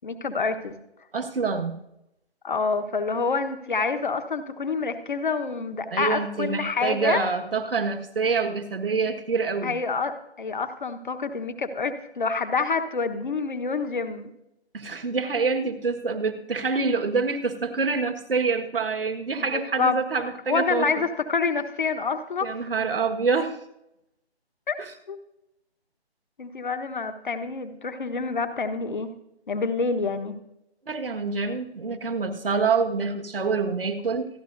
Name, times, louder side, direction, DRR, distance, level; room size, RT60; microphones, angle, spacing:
voice 1, 0.0-0.8 2.4-7.2 9.6-14.3 19.4-20.0 20.5-22.5 24.7-24.8 25.1-25.2 26.4-29.1 29.5-30.4, left 4 dB, 45° left, 9 dB, 1.2 m, -27 dB
voice 2, 1.1-1.8 5.9-9.7 14.7-21.0 22.4-23.6 24.8-24.9 30.8-34.3, right 4 dB, 55° right, 5 dB, 1.6 m, -26 dB
26.0 x 11.0 x 2.6 m, 0.85 s
figure-of-eight pair, 165°, 33 cm